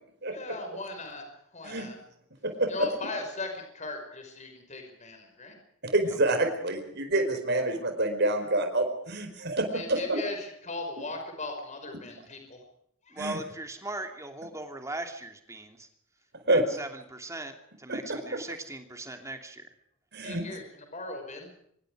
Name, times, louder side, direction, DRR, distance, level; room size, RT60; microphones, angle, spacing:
voice 1, 0.2-1.2 1.5-2.0 2.7-5.5 9.7-12.6 13.1-13.2 19.1-19.3 20.2-21.5, left 2 dB, 35° left, 4 dB, 5.6 m, -38 dB
voice 2, 5.8-10.2 13.2-13.4 16.5-16.6 17.9-18.0 18.3-18.4 20.1-20.4, right 2 dB, 55° right, 6 dB, 4.8 m, -27 dB
voice 3, 13.1-15.9 16.5-17.5 17.8-19.6, right 2 dB, 15° right, 5 dB, 2.9 m, -39 dB
25.5 x 22.0 x 5.0 m, 0.71 s
head